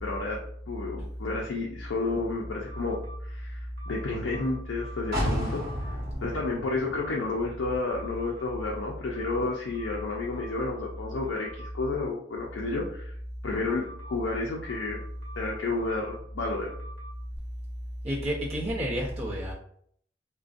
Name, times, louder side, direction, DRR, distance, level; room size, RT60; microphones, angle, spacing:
voice 1, 0.0-3.0 3.3-3.6 3.9-5.6 6.2-13.1 13.4-15.0 15.4-16.7, left 3 dB, 70° left, -2 dB, 0.4 m, -31 dB
sound 1, 2.7-3.2 3.8-5.1 5.5-5.9 8.0-8.5 9.1-10.8 11.2-11.7 13.7-14.1 14.6-16.2 16.6-17.1, right 1 dB, 70° right, 0.7 m, -48 dB
sound 2, 5.1-8.9 9.2-9.3, equal, 45° right, 1.0 m, -34 dB
voice 2, 18.0-19.5, equal, 30° right, -6 dB, 0.6 m, -30 dB
2.5 x 2.1 x 2.4 m, 0.64 s
head